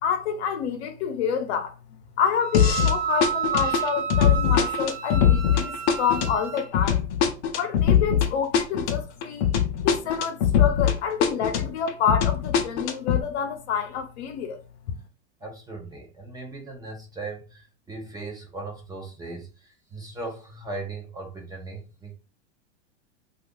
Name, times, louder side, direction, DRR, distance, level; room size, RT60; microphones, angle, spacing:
voice 1, 0.0-7.0 7.6-14.6 14.9-15.0, left 7 dB, 65° left, 0.8 m, -28 dB
Wind instrument woodwind instrument, 2.4-6.7, right 9 dB, 55° right, 0.8 m, -30 dB
sound 1, 2.5-3.0 3.2-11.0 11.2-13.2, left 8 dB, 40° left, 0.6 m, -22 dB
voice 2, 15.4-22.1, right 3 dB, 10° right, 0.6 m, -38 dB
2.7 x 2.4 x 3.6 m
supercardioid pair, 135°, 35 cm